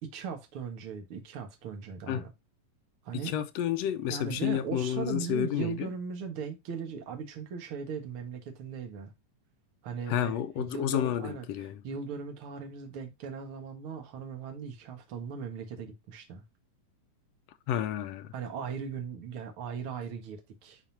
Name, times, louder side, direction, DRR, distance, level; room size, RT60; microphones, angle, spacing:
voice 1, 0.0-2.3 3.0-3.3 4.1-9.1 9.8-16.4 18.3-20.8, right 6 dB, 50° right, 2.1 m, -38 dB
voice 2, 3.1-5.9 10.1-11.8 17.7-18.3, left 10 dB, 80° left, 1.5 m, -30 dB
10.5 x 4.2 x 2.8 m
omnidirectional pair, 3.7 m